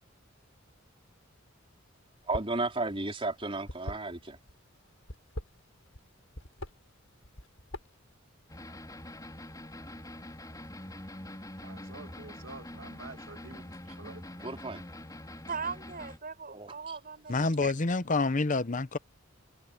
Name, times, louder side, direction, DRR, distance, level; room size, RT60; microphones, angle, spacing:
sound 1, 2.2-2.6 2.9-4.5 5.0-6.0 6.3-6.7 7.2-8.1, left 1 dB, 85° left, 6.6 m, -41 dB
voice 1, 2.3-4.4 14.4-14.8 16.5-16.9, right 2 dB, 25° right, 4.3 m, -33 dB
sound 2, 8.5-16.2, left 1 dB, 20° left, 5.2 m, -45 dB
voice 2, 11.6-13.6 14.0-14.2, right 3 dB, 65° right, 2.3 m, -48 dB
voice 3, 15.5-17.7, right 5 dB, 45° right, 7.8 m, -39 dB
voice 4, 17.3-19.0, left 3 dB, 40° left, 0.9 m, -27 dB
head